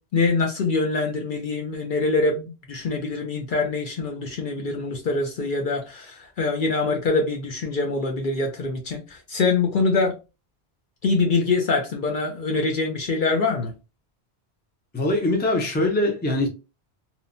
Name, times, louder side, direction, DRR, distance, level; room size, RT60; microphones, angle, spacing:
voice 1, 0.1-10.1 11.0-13.7, left 3 dB, 60° left, 0.6 m, -24 dB
voice 2, 14.9-16.5, left 1 dB, 15° left, 0.5 m, -22 dB
2.9 x 2.1 x 2.5 m
omnidirectional pair, 1.1 m